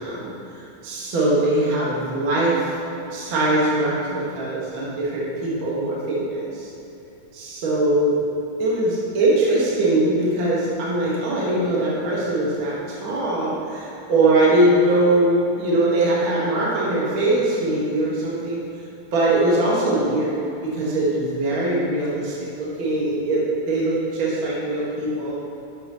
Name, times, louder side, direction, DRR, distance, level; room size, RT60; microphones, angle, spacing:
voice 1, 0.0-2.7 3.1-6.7 7.3-8.1 8.6-12.8 13.0-18.6 19.1-20.4 20.6-25.4, right 1 dB, 45° right, -6 dB, 2.4 m, -21 dB
7.7 x 7.7 x 5.7 m, 2.9 s
omnidirectional pair, 3.4 m